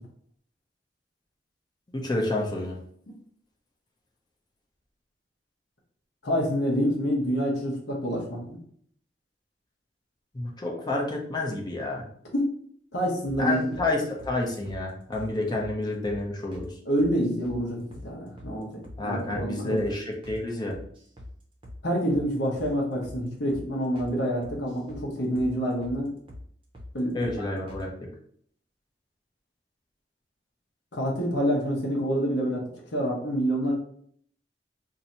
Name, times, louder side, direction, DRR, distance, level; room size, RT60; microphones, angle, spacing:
voice 1, 1.9-2.8 10.3-12.0 13.4-16.8 19.0-20.8 27.1-28.1, left 2 dB, 25° left, -1 dB, 0.6 m, -29 dB
voice 2, 6.2-8.6 12.3-12.5 12.9-13.8 16.8-18.7 19.0-19.9 21.8-26.1 26.9-27.3 30.9-32.7 32.9-33.7, equal, 85° left, -2 dB, 0.9 m, -27 dB
sound 1, 13.3-13.9 14.2-14.4 14.7-14.8 15.1-15.3 15.6-15.7 16.1-16.2 16.5-16.7 17.0-17.6 17.9-18.1 18.4-18.5 18.8-19.0 19.3-19.5 19.8-19.9 20.2-20.4 20.7-21.3 21.6-21.8 22.1-22.3 22.6-22.7 23.0-23.2 23.5-23.7 24.0-24.1 24.4-25.1 25.4-25.5 25.8-26.0 26.3-26.4 26.7-26.9 27.2-27.4 27.7-27.8, left 1 dB, 30° right, 0.7 m, -43 dB
2.7 x 2.6 x 4.2 m, 0.62 s
head